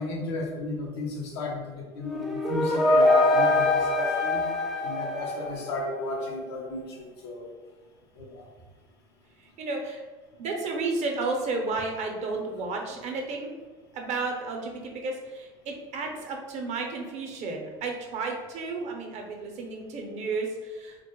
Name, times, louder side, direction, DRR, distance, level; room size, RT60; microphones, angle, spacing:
voice 1, 0.0-4.5 4.8-7.5 8.2-8.5, left 2 dB, 90° left, -1 dB, 0.5 m, -34 dB
sound 1, 2.0-6.0, left 2 dB, ahead, 0.4 m, -23 dB
voice 2, 9.6-10.0 10.4-13.5 13.9-21.0, right 3 dB, 55° right, 2 dB, 0.6 m, -32 dB
2.1 x 2.0 x 2.9 m, 1.3 s
hypercardioid pair, 75°, 14 cm